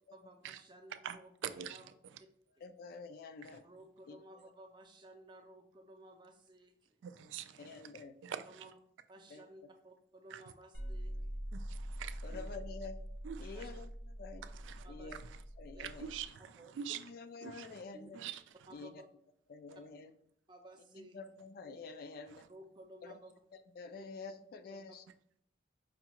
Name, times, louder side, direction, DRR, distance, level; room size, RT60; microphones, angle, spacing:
voice 1, 0.1-1.9 3.6-7.0 8.5-8.8 9.1-11.4 12.3-12.5 13.5-13.7 14.8-15.2 15.7-15.9 16.4-16.8 17.9-18.1 18.7-19.0 20.5-21.2 22.5-23.3 24.0-24.1 24.7-24.8, right 1 dB, 25° right, 0.5 m, -56 dB
voice 2, 1.4-1.8 3.4-3.6 7.0-8.5 10.3-10.4 11.5-12.4 13.2-13.6 14.4-14.8 15.2-15.4 15.8-17.0 17.4-17.8 18.1-18.4, right 9 dB, 85° right, 0.3 m, -45 dB
voice 3, 2.6-3.6 4.1-4.2 7.6-8.1 9.3-9.4 12.2-13.0 13.4-13.9 14.2-14.4 14.9-15.2 15.6-16.1 16.9-18.2 18.7-19.0 19.5-20.1 21.0-22.5 23.0-23.1 23.8-25.0, left 4 dB, 55° left, 0.3 m, -48 dB
sound 1, 10.7-16.3, equal, 70° left, 0.9 m, -44 dB
5.1 x 2.3 x 2.9 m
head